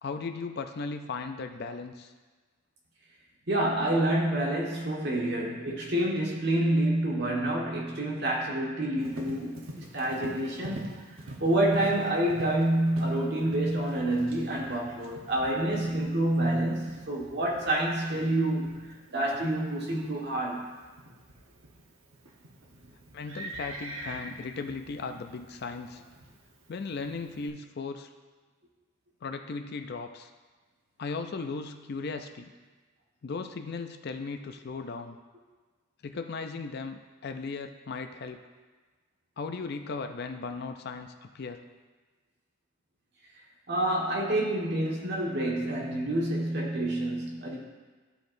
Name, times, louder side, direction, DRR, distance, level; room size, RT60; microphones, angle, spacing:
voice 1, 0.0-2.1 23.1-26.0 26.7-28.1 29.2-30.3 31.0-32.5 33.2-35.2 36.0-38.4 39.4-41.6, left 4 dB, 50° left, 7 dB, 0.4 m, -37 dB
voice 2, 3.5-10.9 11.4-20.7 43.7-47.6, right 1 dB, 50° right, -3 dB, 1.5 m, -28 dB
Livestock farm animals working animals, 9.0-27.5, right 1 dB, 70° right, 1.0 m, -46 dB
13.0 x 4.5 x 2.6 m, 1.4 s
head